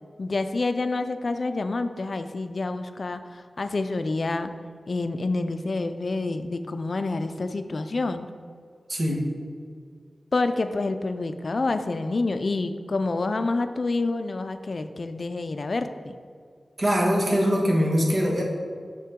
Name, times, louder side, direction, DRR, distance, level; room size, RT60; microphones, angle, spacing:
voice 1, 0.2-3.2 3.6-4.5 4.9-8.3 10.3-16.1, left 3 dB, 55° left, 9 dB, 0.4 m, -28 dB
voice 2, 8.9-9.2 16.8-18.4, equal, 50° right, -2 dB, 1.5 m, -22 dB
8.4 x 5.9 x 3.7 m, 2.1 s
wide cardioid pair, 85°, 0 cm